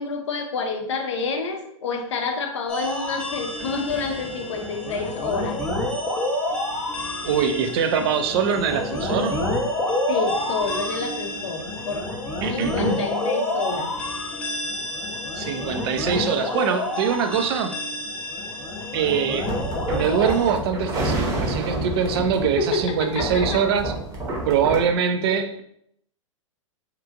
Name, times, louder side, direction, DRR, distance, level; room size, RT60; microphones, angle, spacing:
voice 1, 0.0-5.6 10.1-12.1 12.5-13.9 22.6-23.6, left 4 dB, 65° left, 5 dB, 0.5 m, -28 dB
sound 1, 2.7-20.5, left 1 dB, 5° left, 0.5 m, -28 dB
voice 2, 7.2-9.4 12.4-13.0 15.4-17.8 18.9-19.5 19.9-23.9 24.4-25.6, right 7 dB, 50° right, 7 dB, 0.4 m, -23 dB
sound 2, 19.4-24.9, right 1 dB, 20° right, 0.8 m, -29 dB
2.9 x 2.4 x 2.4 m, 0.72 s
figure-of-eight pair, 105°, 17 cm